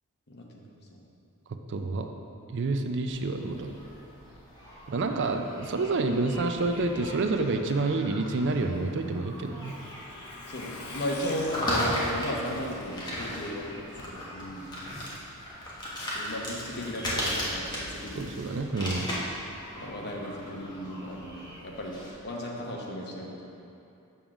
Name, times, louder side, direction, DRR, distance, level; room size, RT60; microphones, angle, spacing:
voice 1, 0.3-1.0 10.5-14.7 16.1-18.4 19.7-22.0 22.2-23.4, equal, 50° left, -2 dB, 1.0 m, -35 dB
voice 2, 1.7-2.1 2.5-3.8 4.9-9.7 18.1-19.1, right 3 dB, 55° right, 5 dB, 0.4 m, -28 dB
sound 1, 3.1-22.1, equal, 20° left, 1.2 m, -37 dB
Truck, 8.6-13.3 13.6-13.7 14.0-14.1, left 2 dB, 75° left, 0.8 m, -45 dB
7.0 x 3.7 x 5.9 m, 2.7 s
head